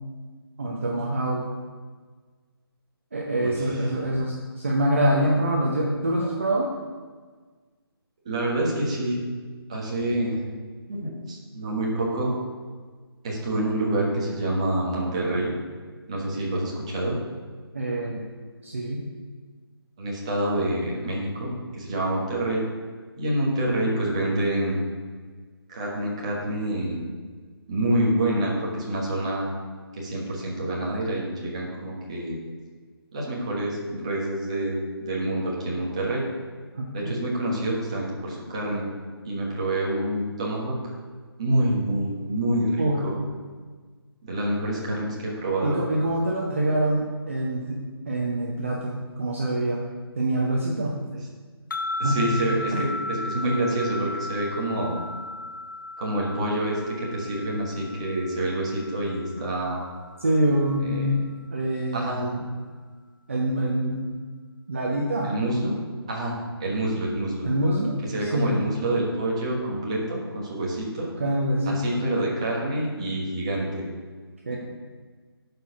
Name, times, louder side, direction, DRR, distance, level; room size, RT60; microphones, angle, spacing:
voice 1, 0.6-1.5 3.1-6.7 17.7-18.3 18.6-19.0 36.7-37.3 42.8-43.0 45.6-49.8 50.2-51.0 52.0-52.3 52.7-52.8 60.2-61.2 61.5-62.4 63.3-64.1 64.7-65.3 67.4-68.6 71.2-72.0 74.4-74.6, right 1 dB, 30° right, -2 dB, 0.8 m, -25 dB
voice 2, 8.2-9.2 9.7-10.4 10.9-12.3 13.2-15.5 16.1-17.2 20.0-22.6 23.2-24.8 25.7-27.0 27.7-29.5 29.9-32.4 33.1-36.3 36.9-38.8 39.2-40.9 41.4-43.2 44.2-45.8 52.0-55.0 56.0-59.8 60.8-61.1 61.9-62.3 65.2-65.8 66.1-67.5 68.1-71.1 71.7-73.9, right 1 dB, 15° right, -4 dB, 1.2 m, -27 dB
sound 1, 51.7-61.0, left 2 dB, 50° left, 0.7 m, -36 dB
11.5 x 4.7 x 5.8 m, 1.5 s
hypercardioid pair, 180°, 13 cm